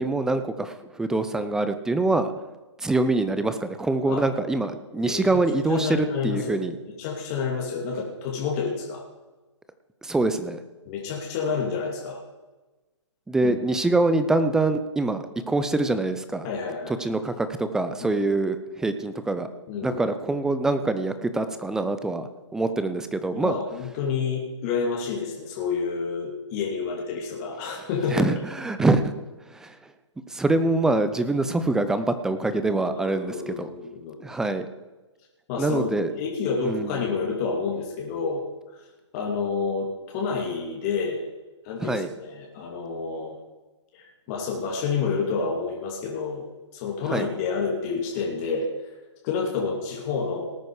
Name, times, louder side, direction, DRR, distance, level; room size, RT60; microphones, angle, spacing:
voice 1, 0.0-2.3 2.8-6.8 10.0-10.6 13.3-16.5 16.9-19.5 19.8-23.6 28.1-29.1 29.5-29.8 30.3-33.7 34.2-34.7 35.6-36.1 36.6-37.0 41.8-42.1 47.1-47.3, right 2 dB, 5° right, 10 dB, 0.5 m, -25 dB
voice 2, 4.9-5.4 5.7-6.6 7.0-9.1 10.9-12.2 13.4-13.6 16.4-17.0 18.0-18.2 19.7-20.0 23.3-28.3 28.8-28.9 32.9-34.2 35.5-38.4 38.7-38.8 39.1-41.2 41.6-43.4 43.9-46.5 46.7-48.7 49.2-50.6, left 5 dB, 30° left, -1 dB, 2.6 m, -29 dB
18.5 x 9.2 x 4.9 m, 1.2 s
hypercardioid pair, 150°, 16 cm